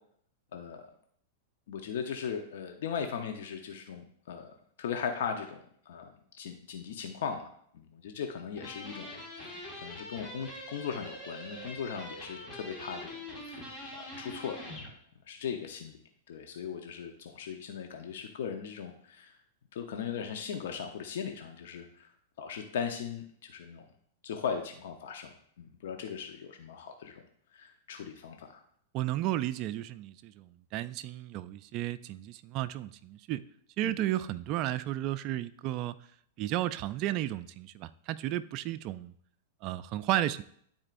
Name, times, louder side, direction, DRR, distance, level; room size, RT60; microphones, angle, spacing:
voice 1, 0.5-0.9 1.7-4.5 4.8-9.5 9.8-13.2 13.5-14.6 15.3-16.0 16.3-19.4 19.7-22.1 22.4-23.8 24.2-27.2 27.5-28.6 33.8-34.0, left 7 dB, 75° left, 5 dB, 0.8 m, -38 dB
sound 1, 8.6-14.9, left 1 dB, 15° left, 1.8 m, -44 dB
voice 2, 28.9-33.4 33.8-36.0 36.4-39.1 39.6-40.4, right 14 dB, 40° right, 13 dB, 0.4 m, -33 dB
12.0 x 4.3 x 2.6 m, 0.64 s
hypercardioid pair, 135°, 0 cm